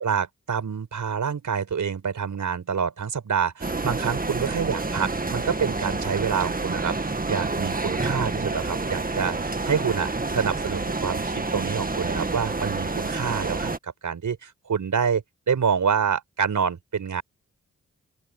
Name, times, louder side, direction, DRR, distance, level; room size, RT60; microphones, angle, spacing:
voice 1, 0.0-17.2, right 6 dB, 70° right, 5.6 m, -27 dB
sound 1, 3.6-13.8, right 3 dB, 25° right, 1.9 m, -28 dB
open air
cardioid pair, 45°, 31 cm